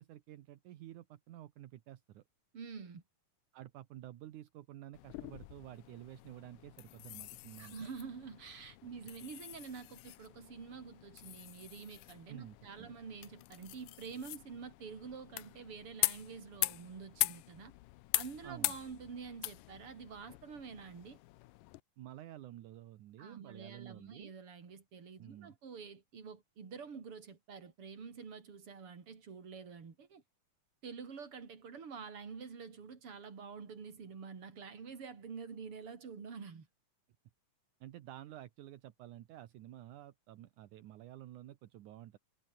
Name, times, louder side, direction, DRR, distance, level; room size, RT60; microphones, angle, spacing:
voice 1, 0.0-2.2 3.5-7.8 12.3-12.9 18.4-18.8 22.0-24.3 25.2-25.6 37.8-42.2, right 13 dB, 75° right, 2.6 m, -51 dB
voice 2, 2.5-3.0 7.6-17.7 18.1-21.2 23.2-30.2 30.8-36.7, right 5 dB, 45° right, 4.1 m, -48 dB
sound 1, 4.9-21.8, left 19 dB, 90° left, 2.3 m, -42 dB
omnidirectional pair, 3.7 m